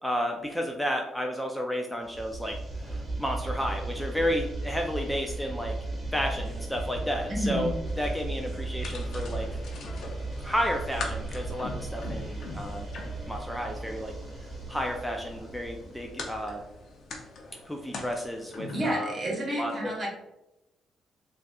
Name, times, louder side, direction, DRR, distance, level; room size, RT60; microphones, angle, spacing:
voice 1, 0.0-5.7 6.1-7.7 8.0-9.6 10.4-12.9 13.2-14.1 14.7-16.6 17.7-19.2 19.6-19.9, equal, 5° left, 2 dB, 0.3 m, -32 dB
sound 1, 2.1-16.9, right 2 dB, 20° right, 1.0 m, -36 dB
voice 2, 7.3-7.7 18.7-20.1, right 1 dB, 45° right, -2 dB, 1.2 m, -30 dB
sound 2, 7.9-18.9, left 3 dB, 60° left, 0.6 m, -43 dB
3.9 x 2.4 x 2.2 m, 0.90 s
cardioid pair, 90°, 0 cm